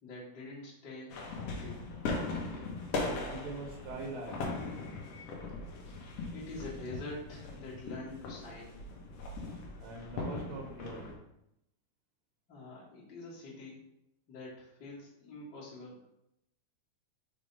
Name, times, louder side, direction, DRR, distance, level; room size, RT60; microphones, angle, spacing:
voice 1, 0.0-1.9 6.3-8.8 12.5-13.8 14.3-16.1, left 2 dB, 40° left, -6 dB, 1.6 m, -46 dB
sound 1, 1.1-11.1, left 3 dB, 80° left, 1.4 m, -39 dB
voice 2, 2.9-4.5 9.5-11.2, right 3 dB, 75° right, -2 dB, 2.6 m, -43 dB
5.9 x 3.4 x 5.3 m, 0.82 s
omnidirectional pair, 4.4 m